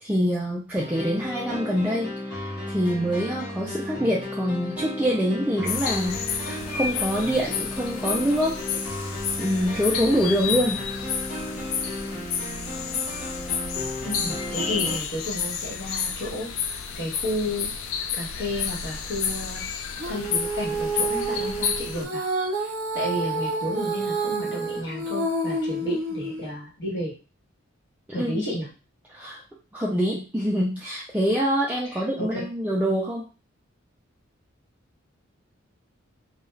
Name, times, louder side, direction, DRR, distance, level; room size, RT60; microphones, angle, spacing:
voice 1, 0.0-8.6 9.0-9.1 9.4-10.8 28.2-28.4 29.1-29.4 29.7-33.3, equal, 10° right, -5 dB, 0.3 m, -25 dB
sound 1, 0.7-15.0, left 1 dB, 20° left, 1.2 m, -34 dB
sound 2, 5.7-22.0, left 7 dB, 80° left, 0.4 m, -31 dB
voice 2, 14.0-17.7 18.1-19.6 20.1-27.1 28.1-28.7 31.8-32.4, equal, 55° left, -5 dB, 1.2 m, -32 dB
Female singing, 20.0-26.5, right 2 dB, 70° right, 0.8 m, -29 dB
2.3 x 2.3 x 3.1 m, 0.34 s
head